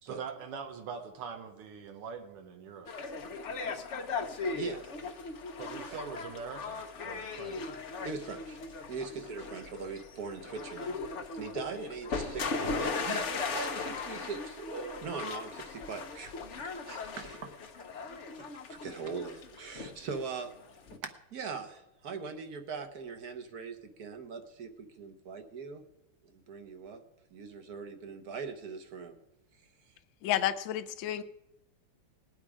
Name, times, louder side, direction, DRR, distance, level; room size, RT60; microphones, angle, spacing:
voice 1, 0.0-2.9 5.6-7.7 9.0-9.1, right 6 dB, 85° right, 5 dB, 2.0 m, -43 dB
sound 1, 2.9-21.0, left 4 dB, 55° left, 0.8 m, -38 dB
voice 2, 4.5-5.3 8.0-8.6 8.9-11.0 11.3-17.5 18.4-20.5 21.0-25.8 26.3-27.0 27.3-29.2, right 5 dB, 50° right, 7 dB, 1.4 m, -41 dB
voice 3, 30.2-31.2, left 12 dB, 70° left, 11 dB, 1.4 m, -30 dB
19.5 x 8.7 x 4.9 m, 0.91 s
omnidirectional pair, 2.4 m